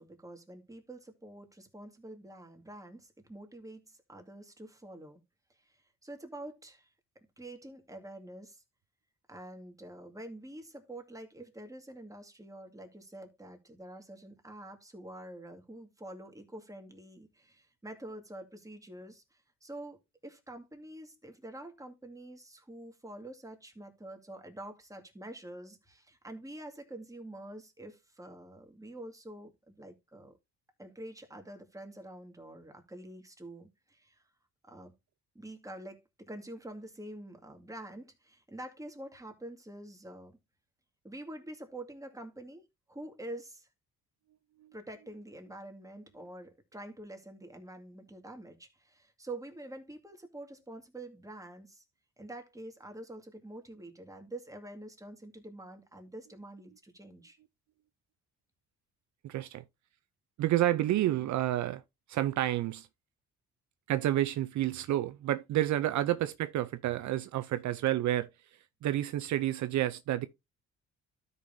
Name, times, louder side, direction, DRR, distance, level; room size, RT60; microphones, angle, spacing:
voice 1, 0.0-5.2 5.7-5.8 6.0-6.9 7.2-8.6 9.3-20.0 20.2-30.4 30.8-34.2 34.7-34.9 35.3-40.4 41.0-43.7 44.7-51.8 52.2-57.4, right 1 dB, 10° right, 2.1 m, -47 dB
voice 2, 59.2-59.6 60.4-61.8 62.1-62.9 63.9-68.3 68.8-70.3, right 13 dB, 70° right, 0.6 m, -29 dB
13.0 x 5.5 x 2.7 m
cardioid pair, 90°, 30 cm